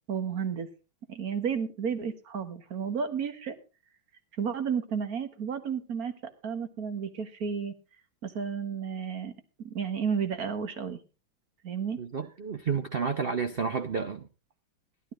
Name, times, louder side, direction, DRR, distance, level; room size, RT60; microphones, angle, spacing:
voice 1, 0.1-0.7 1.1-3.6 4.4-6.1 6.4-7.7 8.2-9.3 9.6-11.0 11.6-12.0, right 6 dB, 50° right, 1.6 m, -32 dB
voice 2, 12.0-14.3, right 5 dB, 70° right, 0.5 m, -31 dB
16.0 x 12.0 x 3.7 m
omnidirectional pair, 2.2 m